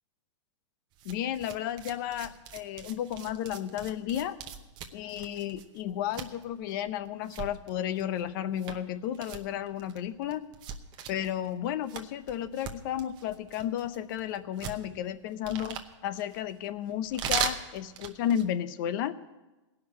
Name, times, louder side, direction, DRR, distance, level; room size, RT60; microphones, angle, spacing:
sound 1, 0.9-18.6, right 8 dB, 30° right, 0.9 m, -40 dB
voice 1, 1.0-4.4 4.9-10.4 11.1-19.2, left 10 dB, 40° left, 14 dB, 0.7 m, -33 dB
17.0 x 5.8 x 9.0 m, 1.1 s
hypercardioid pair, 150°, 16 cm